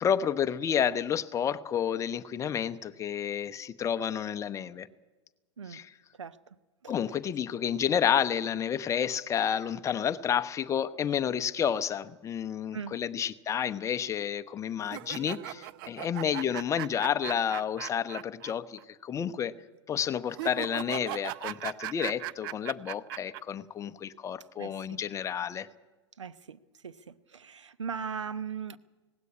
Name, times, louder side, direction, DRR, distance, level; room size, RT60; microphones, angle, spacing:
voice 1, 0.0-4.9 5.7-5.9 6.9-19.5 19.9-25.7, left 8 dB, 20° left, 10 dB, 0.8 m, -30 dB
sound 1, 14.8-18.5 18.8-18.9 20.3-23.4, right 15 dB, 50° right, 0.6 m, -38 dB
voice 2, 24.6-25.0 26.2-26.6 26.8-28.8, right 6 dB, 80° right, 13 dB, 0.9 m, -39 dB
18.0 x 16.5 x 9.8 m, 1.2 s
hypercardioid pair, 105°, 15 cm